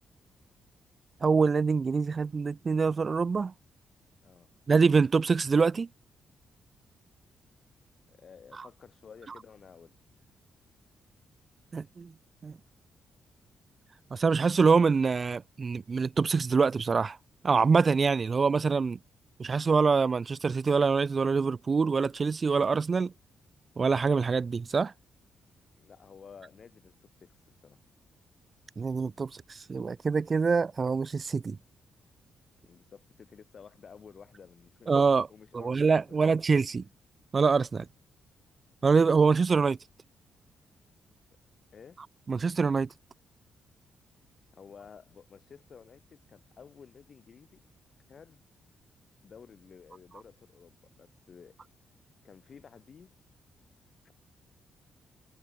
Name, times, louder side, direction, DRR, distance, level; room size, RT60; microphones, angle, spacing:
voice 1, 1.2-3.5 4.7-5.9 11.7-12.1 12.4-12.6 14.1-17.2 17.4-19.0 19.4-23.1 23.8-24.9 28.8-31.6 34.9-35.3 35.5-36.9 37.3-37.9 38.8-39.8 42.3-42.9, right 5 dB, 30° right, 0.4 m, -25 dB
voice 2, 8.1-10.0 25.8-27.3 27.6-27.8 32.6-34.9 35.3-36.3 41.7-42.0 44.5-47.6 48.1-48.4 49.2-51.6 52.2-53.1 54.0-54.1, left 6 dB, 40° left, 2.0 m, -52 dB
cardioid pair, 150°, 0 cm